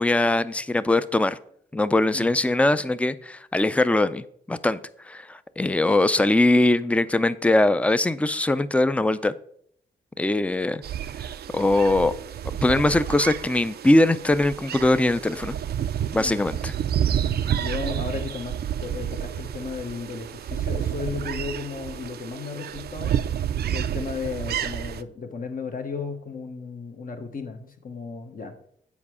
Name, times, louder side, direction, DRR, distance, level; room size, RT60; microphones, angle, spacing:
voice 1, 0.0-1.4 1.7-4.8 5.1-9.3 10.2-10.8 11.5-12.1 12.6-15.6 16.1-16.7, left 2 dB, 5° left, 14 dB, 0.4 m, -21 dB
sound 1, 10.8-25.0, right 9 dB, 60° right, 0.4 m, -30 dB
voice 2, 17.5-23.2 23.7-28.5, left 5 dB, 50° left, 5 dB, 1.1 m, -34 dB
7.2 x 4.8 x 4.9 m, 0.66 s
supercardioid pair, 50°, 18 cm